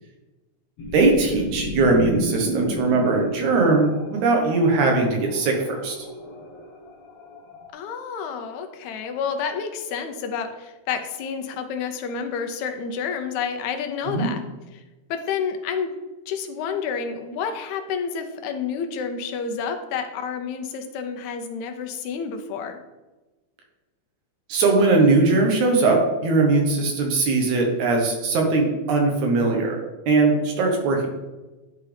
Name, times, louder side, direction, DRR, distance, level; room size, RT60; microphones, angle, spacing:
sound 1, 0.8-7.7, equal, 60° left, 1.7 m, -33 dB
voice 1, 0.9-6.0 14.1-14.3 24.5-29.8 30.1-31.1, right 3 dB, 80° right, 1 dB, 2.5 m, -20 dB
voice 2, 7.7-14.4 15.1-15.9 16.3-22.8, left 6 dB, 80° left, 6 dB, 2.0 m, -29 dB
11.0 x 3.7 x 3.4 m, 1.2 s
omnidirectional pair, 3.4 m